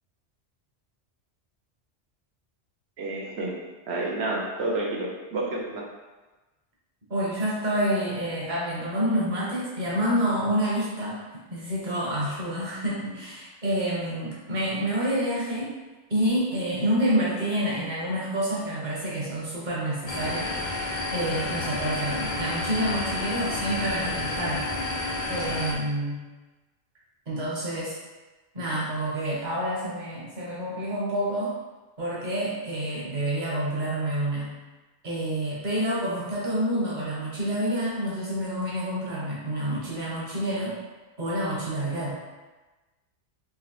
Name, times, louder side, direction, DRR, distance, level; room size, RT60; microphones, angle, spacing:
voice 1, 3.0-3.6 3.9-5.8, right 2 dB, 70° right, -2 dB, 1.0 m, -29 dB
voice 2, 7.1-11.2 11.5-15.7 16.1-20.5 21.1-24.7 25.3-26.2 27.3-28.0 28.5-31.5 32.0-34.5 35.0-40.8 41.2-42.2, right 1 dB, 45° right, -6 dB, 1.1 m, -28 dB
sound 1, 20.1-25.7, left 2 dB, 50° left, 0.7 m, -30 dB
3.8 x 2.9 x 3.0 m, 1.2 s
omnidirectional pair, 1.2 m